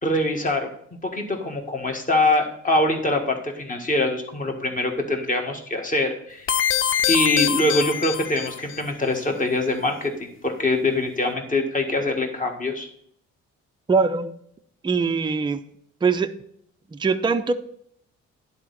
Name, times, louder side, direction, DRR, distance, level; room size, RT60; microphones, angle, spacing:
voice 1, 0.0-0.7 1.0-6.5 7.1-12.9, left 2 dB, 25° left, 3 dB, 1.5 m, -24 dB
sound 1, 6.5-8.8, left 9 dB, 45° left, 0.5 m, -24 dB
voice 2, 13.9-14.3 14.8-15.6 16.0-16.3 16.9-17.5, right 4 dB, 15° right, 7 dB, 0.5 m, -22 dB
10.5 x 4.2 x 4.0 m, 0.68 s
cardioid pair, 90°, 30 cm